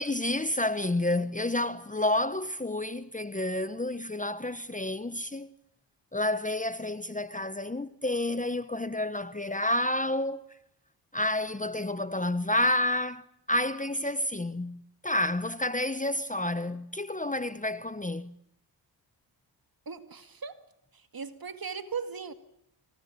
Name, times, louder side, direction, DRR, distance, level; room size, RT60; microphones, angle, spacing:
voice 1, 0.0-5.5 6.1-10.5 11.1-18.3, left 1 dB, 15° left, 1.1 m, -30 dB
voice 2, 19.9-20.6 20.9-22.3, right 6 dB, 45° right, 2.3 m, -38 dB
25.5 x 18.5 x 8.8 m
supercardioid pair, 50°, 49 cm